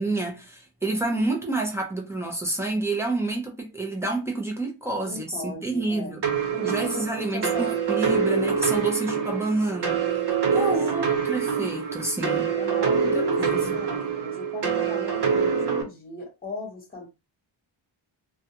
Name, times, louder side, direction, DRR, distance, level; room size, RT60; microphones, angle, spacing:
voice 1, 0.0-6.2 6.6-10.0 10.5-12.5 13.1-13.8, right 2 dB, 5° right, 0.6 m, -29 dB
voice 2, 5.0-6.2 6.5-7.7 9.1-9.4 10.5-11.1 12.6-17.1, left 2 dB, 20° left, 1.2 m, -38 dB
sound 1, 6.2-15.8, right 6 dB, 55° right, 0.8 m, -25 dB
2.5 x 2.2 x 2.8 m
wide cardioid pair, 150°, 46 cm